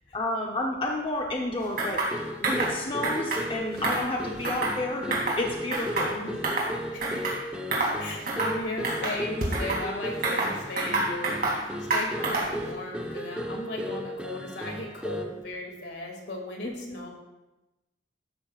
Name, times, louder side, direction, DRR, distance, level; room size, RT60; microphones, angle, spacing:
voice 1, 0.1-2.0 2.4-6.3 7.9-8.0 16.6-17.0, left 1 dB, 30° left, 0 dB, 0.8 m, -31 dB
sound 1, 1.8-2.1 2.4-2.7 3.0-3.4 3.8-4.8 5.1-5.4 5.7-6.7 7.0-7.4 7.7-8.0 8.3-8.6 8.8-9.8 10.2-11.6 11.9-12.6, right 2 dB, 55° right, 2.6 m, -28 dB
sound 2, 2.1-15.4, equal, 5° right, 1.0 m, -36 dB
voice 2, 6.9-7.2 8.0-17.1, left 1 dB, 70° left, 1 dB, 2.3 m, -37 dB
13.0 x 11.5 x 2.4 m, 1.0 s
head